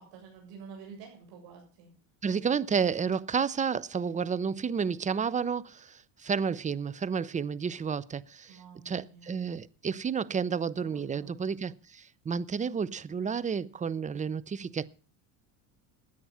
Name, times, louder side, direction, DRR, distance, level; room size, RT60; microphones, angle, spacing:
voice 1, 0.0-1.9 8.5-9.3 10.8-11.3, right 5 dB, 65° right, 7.6 m, -49 dB
voice 2, 2.2-14.9, right 6 dB, 15° right, 0.6 m, -31 dB
16.0 x 10.0 x 5.6 m
supercardioid pair, 110°, 45 cm